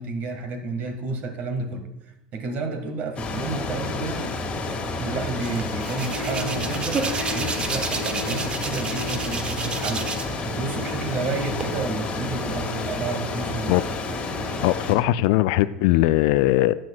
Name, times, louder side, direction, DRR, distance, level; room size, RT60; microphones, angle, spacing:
voice 1, 0.0-1.9 2.3-4.3 5.0-13.8, right 3 dB, 45° right, 7 dB, 1.5 m, -31 dB
sound 1, 3.2-15.0, left 3 dB, 30° left, 1.7 m, -30 dB
Hands, 5.4-10.4 10.7-11.6, right 4 dB, 25° right, 1.0 m, -31 dB
sound 2, 6.0-14.7, left 3 dB, 75° right, 1.0 m, -40 dB
voice 2, 14.6-16.7, left 16 dB, 60° left, 16 dB, 0.3 m, -20 dB
13.0 x 9.1 x 2.3 m, 0.92 s
hypercardioid pair, 80°, 4 cm